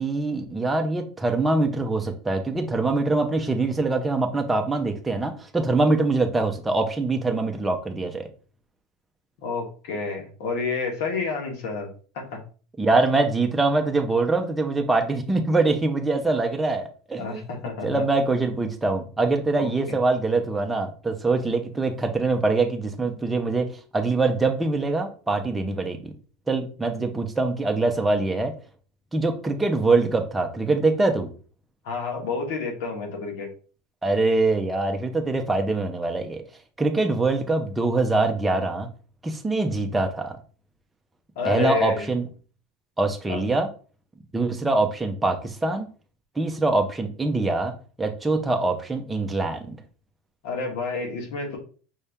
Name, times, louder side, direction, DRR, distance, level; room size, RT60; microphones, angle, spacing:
voice 1, 0.0-8.3 12.8-17.5 17.8-26.1 26.5-28.5 29.1-31.3 34.0-36.4 36.8-38.9 39.2-40.4 41.4-42.3 43.0-43.7 44.3-45.9 46.4-47.7 48.0-49.8, right 3 dB, 10° right, 4 dB, 0.7 m, -24 dB
voice 2, 9.4-12.4 17.2-18.0 19.6-20.0 31.8-33.5 41.3-42.1 43.3-43.4 50.4-51.6, left 4 dB, 70° left, 2 dB, 1.4 m, -30 dB
5.5 x 2.6 x 3.5 m, 0.39 s
supercardioid pair, 140°, 0 cm